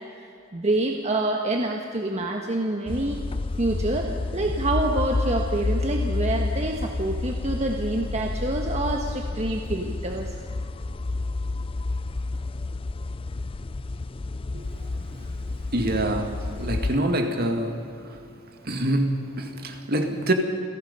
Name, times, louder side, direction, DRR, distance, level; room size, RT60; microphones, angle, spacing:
voice 1, 0.2-3.2 3.6-10.3, right 2 dB, 35° right, 2 dB, 1.3 m, -27 dB
sound 1, 2.9-17.0, left 2 dB, 30° left, 0.4 m, -30 dB
voice 2, 15.7-18.2 18.6-20.3, right 1 dB, 50° right, 5 dB, 2.1 m, -26 dB
28.5 x 17.0 x 5.4 m, 2.6 s
head